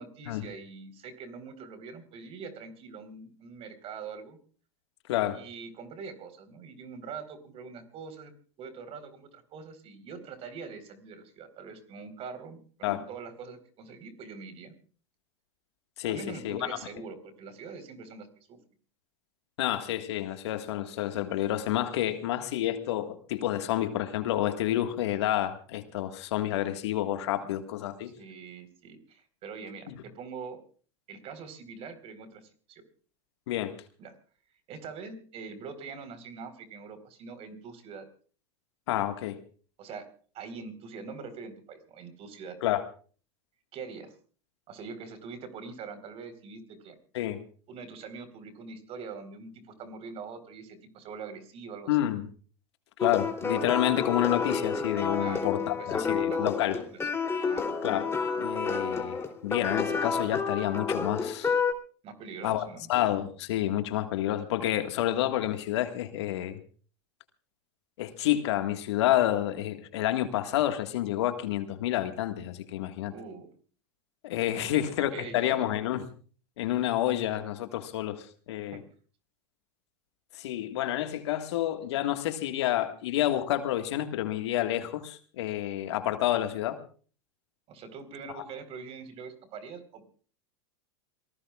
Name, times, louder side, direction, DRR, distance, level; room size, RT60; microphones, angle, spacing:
voice 1, 0.0-4.4 5.3-8.3 8.6-14.7 16.1-18.6 27.4-27.5 28.0-30.6 31.1-32.8 34.0-34.1 34.7-38.1 39.8-40.1 40.3-42.6 43.7-44.1 44.7-46.9 47.7-52.0 55.2-57.0 57.4-57.7 62.0-62.9 73.1-73.5 74.5-75.5 78.7-78.8 87.7-90.0, right 5 dB, 45° right, 10 dB, 4.1 m, -43 dB
voice 2, 16.0-16.8 19.6-28.1 29.9-30.0 33.5-33.7 38.9-39.4 42.6-42.8 47.1-47.4 51.9-52.2 53.0-56.8 57.8-58.1 58.4-61.5 62.4-62.6 62.9-66.6 68.0-73.1 74.2-76.0 76.6-78.8 80.3-86.8 88.3-88.4, left 13 dB, 70° left, 7 dB, 1.8 m, -29 dB
sound 1, 53.0-61.7, left 5 dB, 15° left, 3.2 m, -30 dB
28.0 x 19.0 x 2.4 m, 0.42 s
hypercardioid pair, 95°, 15 cm